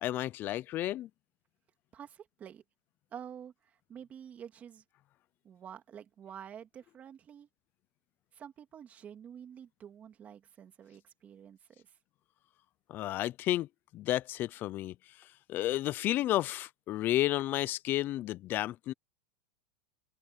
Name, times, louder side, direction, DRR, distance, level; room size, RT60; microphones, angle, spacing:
voice 1, 0.0-1.1 12.9-13.7 13.9-14.9 15.5-18.9, left 14 dB, 30° left, 0.6 m, -31 dB
voice 2, 1.9-2.6 3.1-4.8 5.4-7.5 8.3-12.0, right 8 dB, 25° right, 2.5 m, -49 dB
open air
supercardioid pair, 150°, 6 cm